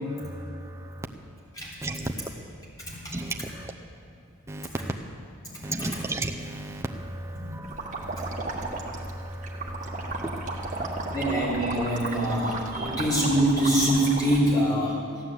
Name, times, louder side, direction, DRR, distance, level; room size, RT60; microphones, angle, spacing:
voice 1, 0.1-1.1 1.8-2.1 3.1-3.7 4.5-4.9 5.6-11.4 12.8-13.3, right 1 dB, 10° right, 2 dB, 0.6 m, -35 dB
voice 2, 2.8-3.1 5.4-5.9 7.3-7.6 7.8-8.1 11.1-14.9, right 1 dB, 15° left, -7 dB, 3.5 m, -25 dB
sound 1, 7.6-14.4, right 2 dB, 35° right, 1.5 m, -34 dB
15.0 x 9.6 x 8.1 m, 2.4 s
head